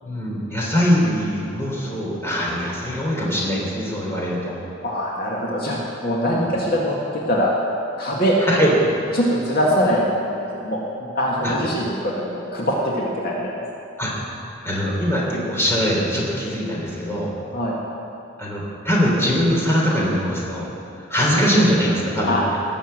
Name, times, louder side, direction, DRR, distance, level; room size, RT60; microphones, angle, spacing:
voice 1, 0.0-4.6 6.3-6.4 8.4-8.7 11.4-11.5 14.0-14.2 14.6-17.3 18.4-20.7 21.1-22.4, equal, 15° left, -4 dB, 3.2 m, -22 dB
voice 2, 4.8-7.6 8.0-8.4 9.1-10.2 10.6-13.5 17.5-17.8 22.3-22.4, equal, 55° left, -4 dB, 1.9 m, -22 dB
18.5 x 7.2 x 7.7 m, 2.7 s
head